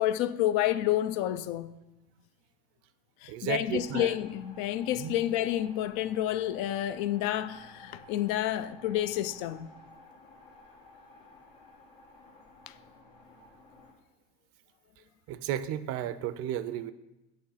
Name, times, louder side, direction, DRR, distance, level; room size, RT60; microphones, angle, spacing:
voice 1, 0.0-1.7 3.2-9.7, left 13 dB, 70° left, 0.4 m, -29 dB
voice 2, 3.3-4.1 5.0-5.1 15.3-16.9, right 11 dB, 55° right, 0.5 m, -33 dB
sound 1, 3.7-13.9, left 2 dB, 85° left, 2.0 m, -54 dB
8.5 x 3.2 x 5.6 m
supercardioid pair, 125°, 29 cm